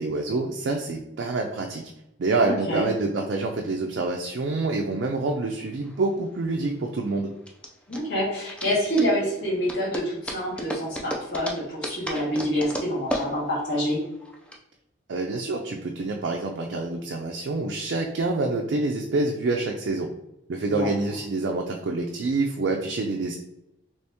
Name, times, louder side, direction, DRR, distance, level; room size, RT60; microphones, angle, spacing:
voice 1, 0.0-1.8 2.2-7.3 15.1-20.1 20.5-23.4, right 3 dB, 65° right, 1 dB, 0.4 m, -27 dB
voice 2, 2.4-2.9 7.9-14.0 20.6-20.9, equal, 60° left, -8 dB, 1.5 m, -27 dB
sound 1, 5.7-14.6, equal, 5° left, 0.3 m, -35 dB
3.0 x 2.8 x 3.4 m, 0.87 s
head